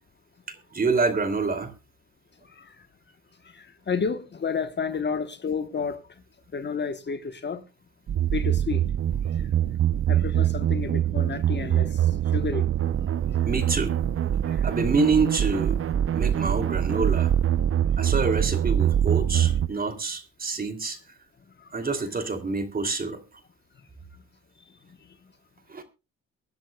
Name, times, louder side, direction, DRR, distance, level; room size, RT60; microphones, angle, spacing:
voice 1, 0.5-1.7 13.4-14.0 14.4-15.8 16.1-17.3 18.0-21.0 21.7-23.2 25.7-25.8, right 4 dB, 30° right, 2.8 m, -27 dB
voice 2, 3.5-6.0 6.5-7.6 8.3-8.8 9.4-9.5 10.1-12.7 14.5-14.7 21.8-21.9, left 5 dB, 35° left, 1.1 m, -31 dB
sound 1, 8.1-19.7, right 10 dB, 45° right, 0.7 m, -24 dB
24.0 x 10.5 x 2.3 m
cardioid pair, 90°, 30 cm